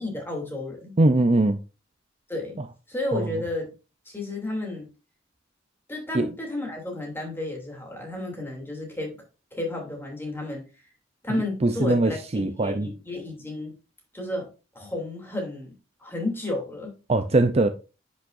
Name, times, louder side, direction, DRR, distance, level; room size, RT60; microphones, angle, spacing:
voice 1, 0.0-0.9 2.3-2.6 2.9-3.6 4.1-4.9 5.9-9.2 9.5-10.6 11.2-13.7 14.1-14.5 14.7-15.7 16.0-16.9, left 2 dB, 10° left, 2.9 m, -32 dB
voice 2, 1.0-1.6 3.1-3.3 6.1-6.3 11.3-12.9 17.1-17.7, right 2 dB, 35° right, 0.6 m, -21 dB
10.0 x 6.3 x 2.6 m
head